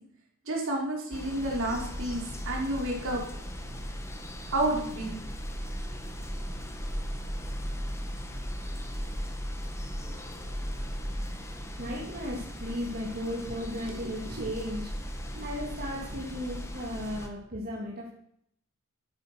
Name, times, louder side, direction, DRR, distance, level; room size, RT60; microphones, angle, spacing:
voice 1, 0.5-3.2 4.5-5.2 13.9-14.5 15.4-15.5, right 1 dB, 60° right, -1 dB, 5.2 m, -31 dB
sound 1, 1.1-17.3, equal, 15° left, 1.9 m, -37 dB
voice 2, 11.8-14.9 15.4-18.1, equal, 45° right, -4 dB, 3.2 m, -35 dB
13.0 x 11.5 x 6.4 m, 0.70 s
head